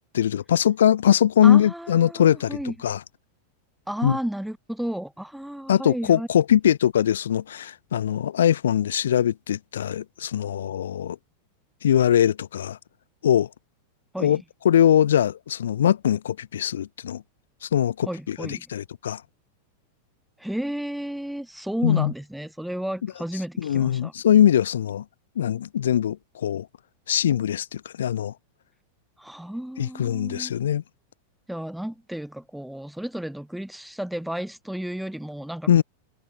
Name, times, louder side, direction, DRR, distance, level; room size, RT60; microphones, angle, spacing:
voice 1, 0.1-2.6 2.8-3.0 4.0-4.2 5.7-11.2 11.8-12.8 13.2-13.5 14.2-17.2 17.6-19.2 21.8-22.1 23.6-25.0 25.4-26.7 27.1-28.3 29.8-30.8 35.7-35.8, left 10 dB, 65° left, 0.9 m, -21 dB
voice 2, 1.4-2.8 3.9-6.3 14.1-14.4 18.1-18.7 20.4-24.1 29.2-30.5 31.5-35.8, right 1 dB, ahead, 1.0 m, -32 dB
figure-of-eight pair, 90°, 0 cm